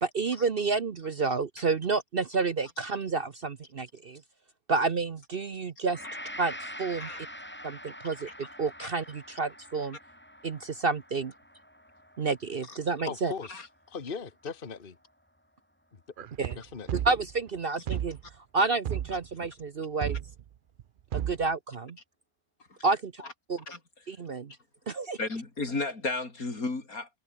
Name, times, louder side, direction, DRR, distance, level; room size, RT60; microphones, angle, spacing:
voice 1, 0.0-4.2 4.7-6.0 6.4-7.1 7.6-10.0 10.4-11.3 12.2-13.3 16.4-16.6 17.0-18.2 18.5-20.2 21.1-22.0 22.8-23.0 23.5-23.6 24.1-24.5 24.9-25.2, right 4 dB, 45° right, 1.0 m, -30 dB
Gong, 5.9-14.2 14.7-14.8, equal, 5° left, 7.1 m, -45 dB
voice 2, 13.1-15.0 16.5-17.0, left 5 dB, 35° left, 1.6 m, -39 dB
sound 1, 16.2-17.5 17.9-18.3 18.9-19.5 20.0-20.5 20.8-20.9 21.1-21.5, right 10 dB, 85° right, 0.4 m, -33 dB
voice 3, 25.2-27.1, left 3 dB, 70° left, 4.4 m, -33 dB
omnidirectional pair, 1.6 m